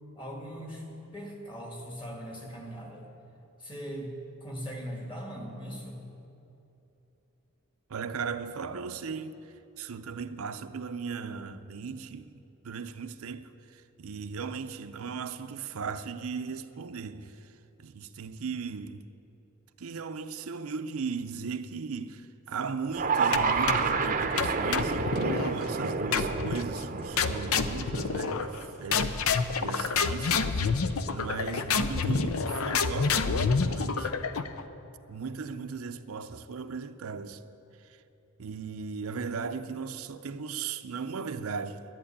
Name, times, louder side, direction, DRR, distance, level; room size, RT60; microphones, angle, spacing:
voice 1, 0.2-0.9 1.1-3.1 3.6-6.0, equal, 25° left, 2.1 m, -40 dB
voice 2, 7.9-17.5 17.8-19.1 19.8-29.3 29.6-30.8 31.1-34.1 35.1-37.4 37.8-38.0 38.4-41.8, right 5 dB, 80° right, 0.6 m, -37 dB
sound 1, 22.9-29.2, right 4 dB, 35° right, 0.6 m, -30 dB
sound 2, 23.3-24.0 24.4-25.5 26.1-26.7 27.2-28.6 28.9-34.6, left 5 dB, 75° left, 0.6 m, -28 dB
11.0 x 10.5 x 8.6 m
head